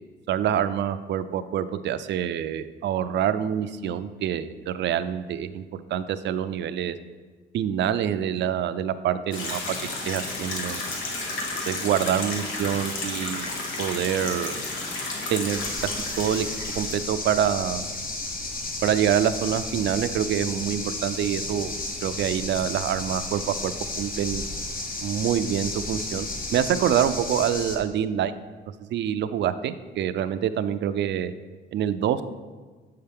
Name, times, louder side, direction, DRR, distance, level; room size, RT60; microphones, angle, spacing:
voice 1, 0.3-5.6 5.9-6.9 7.5-9.6 10.0-10.8 11.7-13.5 13.8-14.5 15.3-15.7 16.2-16.5 16.8-17.8 18.8-21.7 22.0-23.7 24.0-24.4 25.0-28.3 28.9-31.3 31.7-32.2, right 9 dB, 65° right, 12 dB, 0.4 m, -26 dB
sound 1, 9.3-17.1, left 2 dB, 90° left, 1.1 m, -32 dB
sound 2, 15.5-27.8, left 2 dB, 45° left, 1.3 m, -33 dB
7.2 x 5.7 x 3.5 m, 1.4 s
cardioid pair, 90°, 20 cm